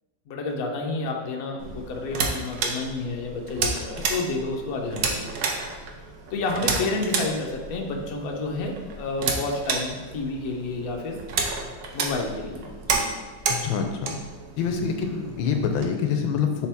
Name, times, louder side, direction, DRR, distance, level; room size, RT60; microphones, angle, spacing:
voice 1, 0.3-5.3 5.6-5.8 6.3-11.2 11.9-13.1, left 3 dB, 60° left, 1 dB, 1.1 m, -30 dB
sound 1, 1.6-15.8, right 4 dB, 65° right, 1.1 m, -31 dB
voice 2, 13.5-14.2 14.6-16.7, left 6 dB, 85° left, 5 dB, 1.4 m, -26 dB
7.2 x 4.2 x 3.5 m, 1.2 s
omnidirectional pair, 2.1 m